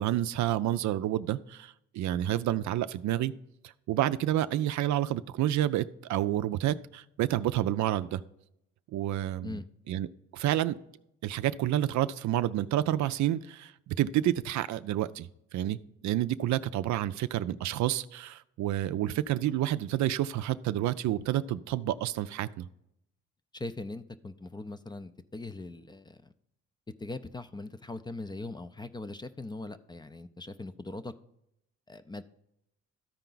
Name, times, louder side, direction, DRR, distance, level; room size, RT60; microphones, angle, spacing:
voice 1, 0.0-3.3 3.9-8.2 8.9-9.6 9.9-10.1 10.3-10.8 11.2-15.8 16.0-22.7, right 13 dB, 70° right, 13 dB, 0.4 m, -29 dB
voice 2, 23.5-26.3 27.0-31.1 31.9-32.2, left 2 dB, 15° left, 12 dB, 0.4 m, -40 dB
13.0 x 4.5 x 3.9 m, 0.80 s
cardioid pair, 90°, 30 cm